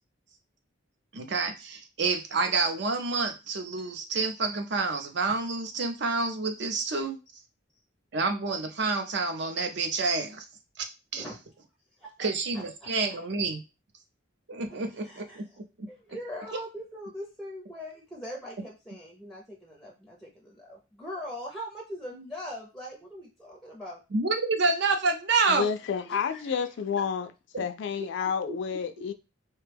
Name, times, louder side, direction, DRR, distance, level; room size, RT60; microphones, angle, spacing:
voice 1, 1.1-7.2 8.1-10.4 10.8-10.9 11.1-11.2 12.2-13.6 14.5-15.4 15.8-15.9 24.1-25.7 27.5-27.6, right 3 dB, 60° right, 0.5 m, -28 dB
voice 2, 12.5-13.3 14.9-15.6 15.9-24.0 26.0-26.6, equal, ahead, 0.5 m, -41 dB
voice 3, 25.5-27.3 27.6-29.1, left 6 dB, 65° left, 0.3 m, -30 dB
3.3 x 2.2 x 3.3 m
head